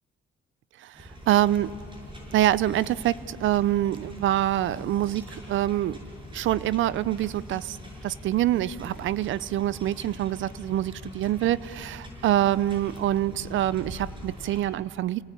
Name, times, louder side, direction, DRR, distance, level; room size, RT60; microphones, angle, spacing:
voice 1, 0.8-1.7 2.3-6.0 6.3-7.8 8.0-15.2, right 13 dB, 75° right, 19 dB, 0.6 m, -25 dB
sound 1, 0.9-14.6, left 1 dB, 25° right, 7.7 m, -43 dB
29.0 x 19.0 x 8.5 m, 2.3 s
cardioid pair, 90°, 20 cm